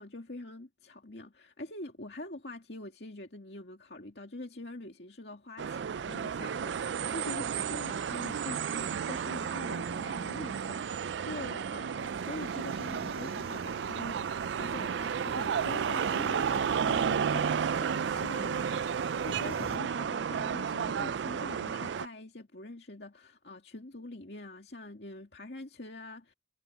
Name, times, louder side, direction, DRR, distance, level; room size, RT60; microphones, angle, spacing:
voice 1, 0.0-26.3, left 2 dB, 65° left, 2.4 m, -44 dB
sound 1, 5.6-22.1, right 7 dB, 85° right, 0.4 m, -32 dB
sound 2, 12.0-19.8, right 1 dB, 60° right, 6.5 m, -47 dB
head